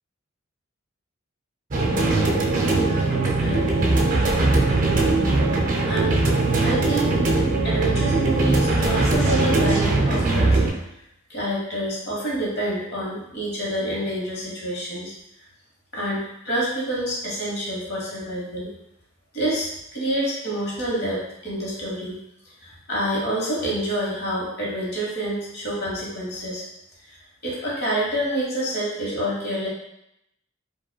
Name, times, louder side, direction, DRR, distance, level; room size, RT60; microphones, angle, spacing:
sound 1, 1.7-10.7, right 2 dB, 40° right, 0.5 m, -20 dB
voice 1, 2.6-4.0 5.8-6.2 6.6-7.1 7.6-10.8 11.3-15.1 15.9-18.7 19.3-22.2 22.6-26.6 27.1-27.2 27.4-29.7, right 1 dB, 50° left, -5 dB, 1.2 m, -28 dB
4.8 x 2.3 x 2.2 m, 0.81 s
head